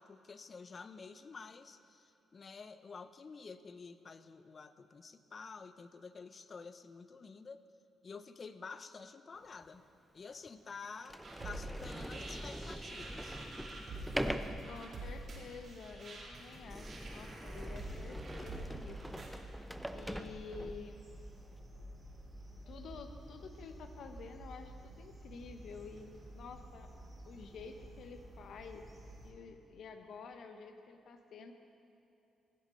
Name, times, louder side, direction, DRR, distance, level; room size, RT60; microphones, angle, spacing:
voice 1, 0.0-7.6 8.0-9.8 10.1-13.4, left 4 dB, 40° left, 12 dB, 0.6 m, -50 dB
Sliding door, 9.6-9.7 10.5-10.6 11.0-20.9, equal, 5° right, 0.6 m, -43 dB
sound 1, 11.2-19.3, right 2 dB, 50° right, 2.6 m, -47 dB
voice 2, 14.7-19.3 19.9-21.1 22.7-26.9 27.3-28.8 29.2-31.5, left 5 dB, 65° left, 6 dB, 1.0 m, -50 dB
sound 2, 17.5-29.3, right 1 dB, 25° right, 2.6 m, -52 dB
15.5 x 8.1 x 5.6 m, 3.0 s
cardioid pair, 90°, 0 cm